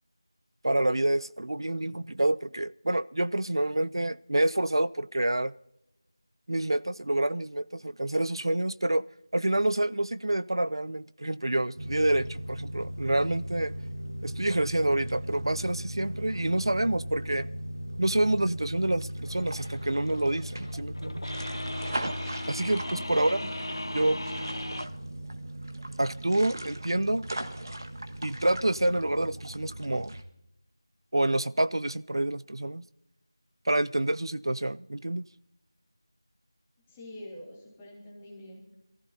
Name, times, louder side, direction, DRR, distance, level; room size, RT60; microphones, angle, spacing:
voice 1, 0.6-5.5 6.5-9.0 9.3-13.7 14.2-17.5 18.0-21.3 22.5-23.4 23.9-24.2 26.0-27.2 28.2-30.1 31.1-32.8 33.7-35.3, right 1 dB, 65° right, 0.5 m, -27 dB
sound 1, 11.8-30.2, right 1 dB, 45° right, 1.5 m, -37 dB
sound 2, 19.3-24.9, left 1 dB, 60° left, 0.9 m, -38 dB
voice 2, 22.9-23.3 36.9-38.6, left 1 dB, 5° left, 1.7 m, -45 dB
26.5 x 14.5 x 2.8 m
figure-of-eight pair, 175°, 3 cm